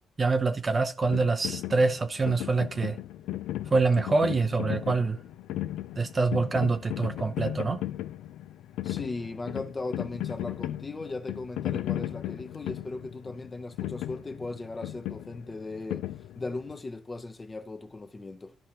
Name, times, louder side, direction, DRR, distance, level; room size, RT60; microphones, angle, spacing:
voice 1, 0.2-3.0 3.7-5.2 6.0-7.8, right 3 dB, 30° right, 0.5 m, -25 dB
sound 1, 1.0-16.8, left 13 dB, 90° left, 0.3 m, -36 dB
voice 2, 8.8-16.1 16.4-18.6, left 3 dB, 25° left, 0.7 m, -37 dB
13.0 x 5.2 x 2.9 m
cardioid pair, 90°, 0 cm